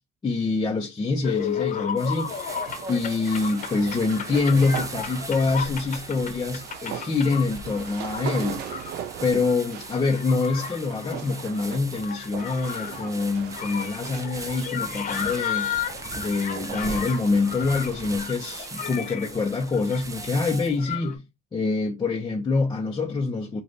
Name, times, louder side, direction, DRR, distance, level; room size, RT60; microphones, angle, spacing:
voice 1, 0.2-2.3 2.9-8.6 9.2-15.7 16.2-21.2 21.5-23.6, left 3 dB, 25° left, 0.8 m, -25 dB
sound 1, 1.2-21.2, left 8 dB, 50° left, 1.1 m, -35 dB
sound 2, 2.0-20.9, right 3 dB, 20° right, 0.8 m, -40 dB
sound 3, 2.3-19.1, right 9 dB, 75° right, 0.7 m, -40 dB
5.1 x 2.5 x 4.0 m
cardioid pair, 110°, 17 cm